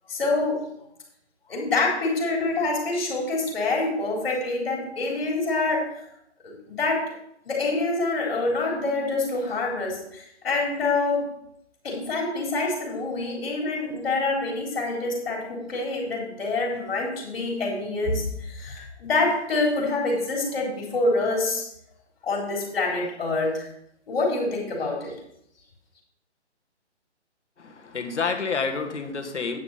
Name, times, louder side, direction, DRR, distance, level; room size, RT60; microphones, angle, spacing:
voice 1, 0.1-0.6 1.5-5.9 6.4-7.1 7.5-11.3 11.8-21.7 22.2-23.7 24.1-25.2, left 3 dB, 55° left, -1 dB, 3.8 m, -26 dB
voice 2, 27.6-29.6, left 5 dB, 75° left, 5 dB, 1.7 m, -29 dB
9.6 x 6.0 x 5.5 m, 0.75 s
hypercardioid pair, 155°, 35 cm